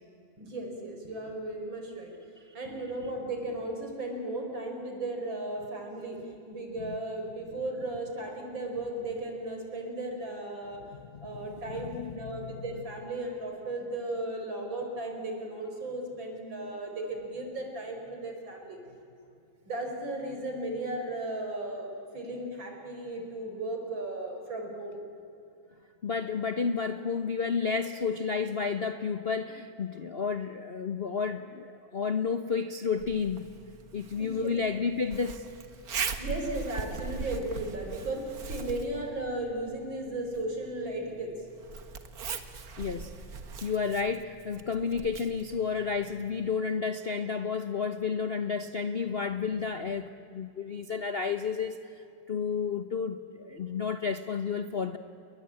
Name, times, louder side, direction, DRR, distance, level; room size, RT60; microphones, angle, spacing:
voice 1, 0.4-2.1 2.5-6.2 6.5-10.8 11.2-18.8 19.7-21.9 22.1-25.0 34.2-34.5 36.2-41.3, right 2 dB, 70° right, 3 dB, 5.3 m, -35 dB
voice 2, 11.2-12.6 26.0-33.5 33.9-35.5 42.8-43.1 43.6-55.0, left 5 dB, 45° left, 9 dB, 0.8 m, -31 dB
Zipper (clothing), 33.0-46.5, right 5 dB, 50° right, 1.8 m, -41 dB
29.5 x 22.0 x 8.6 m, 2.7 s
omnidirectional pair, 2.2 m